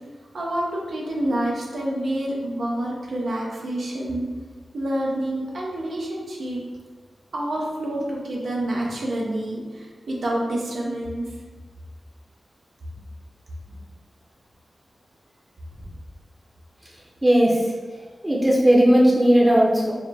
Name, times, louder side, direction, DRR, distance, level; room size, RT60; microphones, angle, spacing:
voice 1, 0.3-4.3 4.7-6.6 7.3-11.3, right 1 dB, 80° right, -3 dB, 0.8 m, -28 dB
voice 2, 17.2-17.7 18.2-19.9, equal, 20° right, -4 dB, 0.8 m, -17 dB
4.6 x 2.1 x 3.5 m, 1.4 s
cardioid pair, 40°, 0 cm